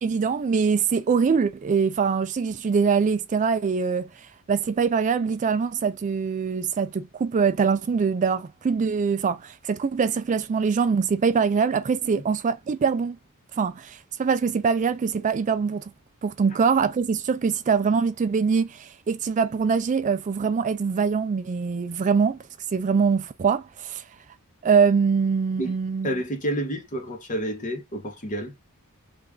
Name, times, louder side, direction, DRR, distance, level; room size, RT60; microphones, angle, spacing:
voice 1, 0.0-4.1 4.5-13.2 13.5-15.9 16.2-22.4 22.7-24.0 24.6-26.1, right 5 dB, 35° right, 0.3 m, -23 dB
voice 2, 26.0-28.5, right 1 dB, 35° left, 1.0 m, -29 dB
3.3 x 2.4 x 3.6 m
head